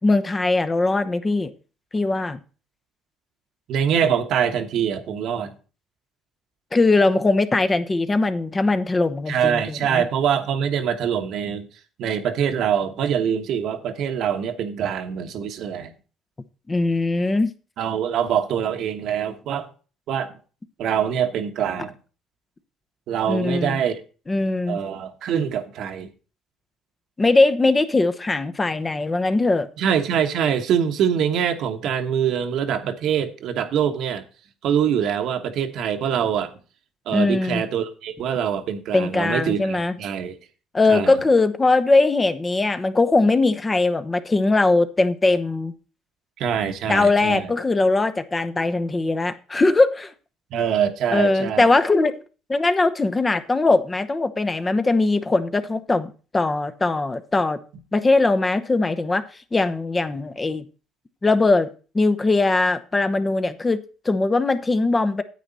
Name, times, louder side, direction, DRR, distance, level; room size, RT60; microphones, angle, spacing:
voice 1, 0.0-1.5 1.9-2.4 6.7-10.0 16.7-17.5 23.3-23.8 24.3-24.8 27.2-29.7 37.1-37.6 38.9-39.9 40.7-45.7 46.9-50.1 51.1-52.1 52.5-57.6 57.9-59.2 59.5-60.6 61.2-61.7 61.9-65.2, left 3 dB, 20° left, 0.8 m, -20 dB
voice 2, 3.7-5.5 9.3-11.7 12.0-15.9 17.8-19.7 20.1-20.3 20.8-22.0 23.1-24.0 24.7-26.1 29.8-34.2 34.6-36.5 37.1-40.4 40.9-41.2 46.4-47.5 50.5-51.7, right 8 dB, 70° right, 1.2 m, -24 dB
9.4 x 8.3 x 4.1 m
cardioid pair, 95°, 0 cm